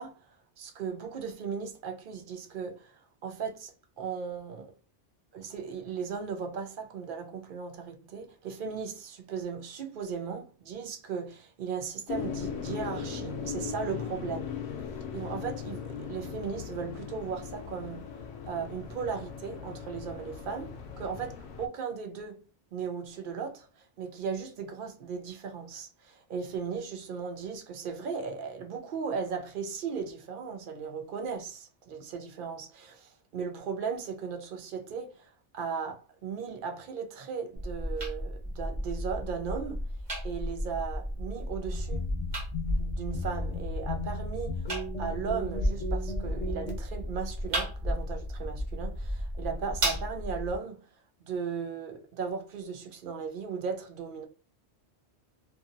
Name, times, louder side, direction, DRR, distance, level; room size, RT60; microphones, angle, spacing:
voice 1, 0.0-4.7 5.3-14.6 15.1-18.2 18.4-39.9 40.2-42.0 42.8-44.7 45.0-50.9 51.3-54.3, right 6 dB, 60° right, 0.6 m, -37 dB
sound 1, 12.1-21.7, left 6 dB, 70° left, 0.8 m, -38 dB
sound 2, 37.6-50.6, equal, 45° right, 1.2 m, -34 dB
sound 3, 41.7-46.8, left 2 dB, 90° left, 1.1 m, -37 dB
2.6 x 2.6 x 2.5 m
omnidirectional pair, 1.2 m